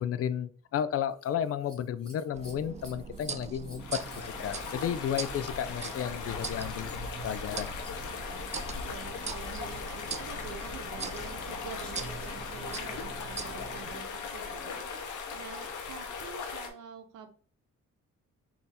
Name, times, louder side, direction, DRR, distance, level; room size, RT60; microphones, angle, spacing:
voice 1, 0.0-4.0 4.2-7.7, left 9 dB, 50° left, 14 dB, 0.4 m, -33 dB
Scissors, 1.1-12.5 14.4-15.0 15.7-15.8, equal, ahead, 1.6 m, -57 dB
sound 1, 2.3-14.0, right 5 dB, 25° right, 0.4 m, -42 dB
sound 2, 3.8-16.7, left 5 dB, 75° left, 0.9 m, -39 dB
voice 2, 8.8-17.3, right 6 dB, 85° right, 7 dB, 0.8 m, -46 dB
4.3 x 2.9 x 3.4 m, 0.43 s
cardioid pair, 90°, 30 cm